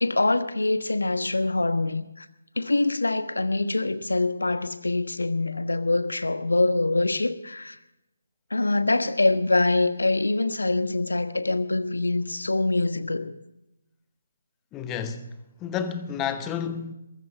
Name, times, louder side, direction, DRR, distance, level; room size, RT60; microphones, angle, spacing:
voice 1, 0.0-2.3 2.6-7.8 8.5-13.3, left 2 dB, 70° left, 1.2 m, -24 dB
voice 2, 14.7-16.9, left 7 dB, 15° left, 0.9 m, -31 dB
22.0 x 14.5 x 3.8 m
figure-of-eight pair, 145°, 0 cm